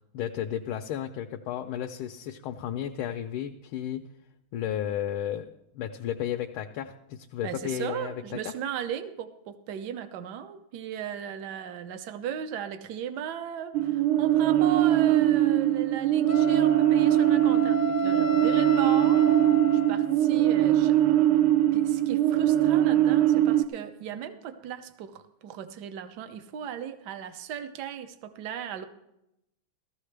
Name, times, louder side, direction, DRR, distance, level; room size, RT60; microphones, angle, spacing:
voice 1, 0.1-4.0 4.5-5.5 5.7-8.5, left 10 dB, 90° left, 4 dB, 1.5 m, -33 dB
voice 2, 7.4-19.2 19.7-21.0 21.7-28.9, right 9 dB, 65° right, 10 dB, 1.2 m, -36 dB
sound 1, 13.7-23.6, right 12 dB, 90° right, 1.5 m, -22 dB
Wind instrument woodwind instrument, 16.3-20.2, left 3 dB, 45° left, 0.6 m, -33 dB
15.0 x 14.0 x 3.3 m, 0.85 s
omnidirectional pair, 2.3 m